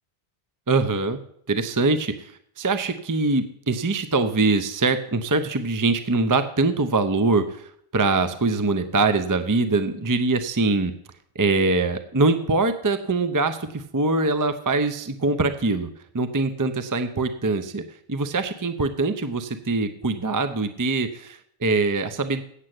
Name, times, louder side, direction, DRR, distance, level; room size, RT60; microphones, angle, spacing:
voice 1, 0.7-1.2 1.5-10.9 11.4-17.8 18.1-22.4, right 3 dB, 25° right, 9 dB, 0.5 m, -23 dB
8.3 x 7.9 x 7.6 m, 0.68 s
omnidirectional pair, 1.1 m